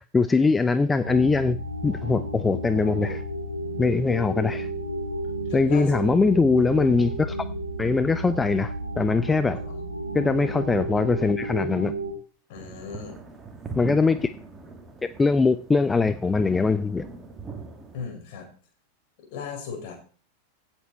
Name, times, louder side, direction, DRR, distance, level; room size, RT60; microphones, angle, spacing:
voice 1, 0.0-1.6 1.8-3.2 3.8-4.7 5.5-7.4 7.8-9.6 10.1-11.9 13.8-14.3 15.0-17.0, left 4 dB, 10° left, 0.5 m, -22 dB
sound 1, 1.0-12.1, right 1 dB, 85° right, 2.0 m, -32 dB
voice 2, 5.5-5.9 9.5-9.7 10.3-10.5 12.5-13.2 17.9-18.5 19.3-20.0, left 6 dB, 45° left, 4.4 m, -37 dB
sound 2, 12.5-18.0, right 3 dB, 15° right, 2.1 m, -40 dB
16.0 x 7.4 x 4.3 m
figure-of-eight pair, 90°, 0 cm